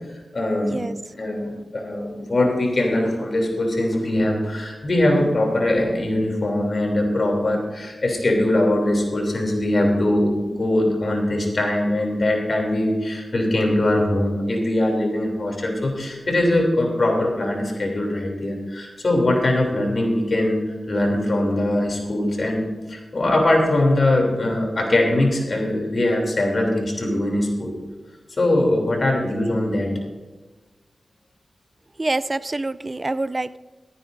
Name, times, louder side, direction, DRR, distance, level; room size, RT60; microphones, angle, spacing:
voice 1, 0.1-0.8 1.2-20.6 20.9-27.8 28.4-30.0, left 1 dB, 60° left, 1 dB, 3.1 m, -21 dB
voice 2, 32.0-33.6, right 2 dB, 40° right, 16 dB, 0.4 m, -26 dB
14.5 x 14.0 x 2.7 m, 1.3 s
cardioid pair, 45°, 0 cm